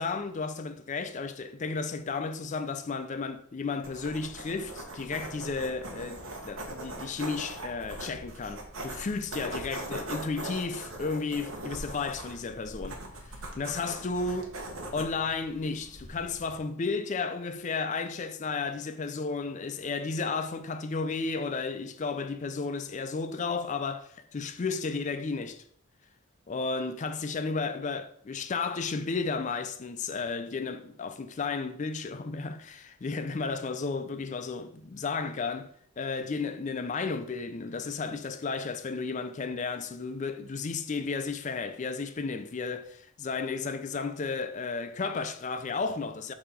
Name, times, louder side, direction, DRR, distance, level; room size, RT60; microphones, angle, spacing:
voice 1, 0.0-13.0 13.6-14.5 14.9-25.6 26.5-35.7 36.0-46.3, left 4 dB, 35° left, 0.4 m, -33 dB
sound 1, 3.8-16.6, right 1 dB, 80° right, 1.2 m, -41 dB
6.8 x 2.9 x 5.2 m
head